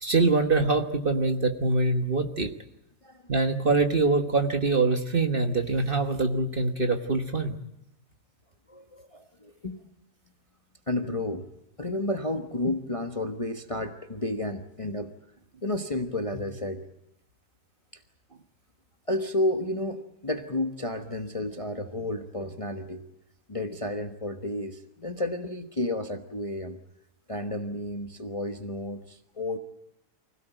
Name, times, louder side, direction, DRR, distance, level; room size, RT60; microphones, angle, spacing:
voice 1, 0.0-2.5 3.3-7.6, right 3 dB, 35° right, 6 dB, 1.5 m, -24 dB
voice 2, 8.7-9.8 10.9-11.5 11.8-15.1 15.6-16.9 19.1-23.0 23.5-26.8 27.3-29.6, left 1 dB, 25° left, 7 dB, 1.1 m, -31 dB
25.0 x 17.0 x 9.1 m, 0.82 s
omnidirectional pair, 1.7 m